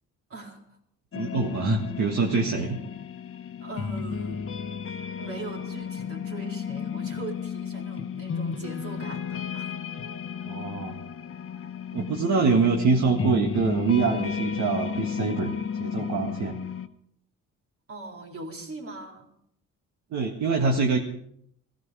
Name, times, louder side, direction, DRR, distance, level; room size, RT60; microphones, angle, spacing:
sound 1, 1.1-16.9, left 7 dB, 45° left, 1.0 m, -33 dB
voice 1, 1.2-2.8 10.5-11.0 11.9-16.6 20.1-21.0, right 4 dB, 70° right, 1 dB, 1.7 m, -25 dB
voice 2, 3.6-4.5 5.2-9.7 17.9-19.3, right 3 dB, 45° right, 2 dB, 3.9 m, -40 dB
16.5 x 15.0 x 4.9 m, 0.71 s
cardioid pair, 90°, 30 cm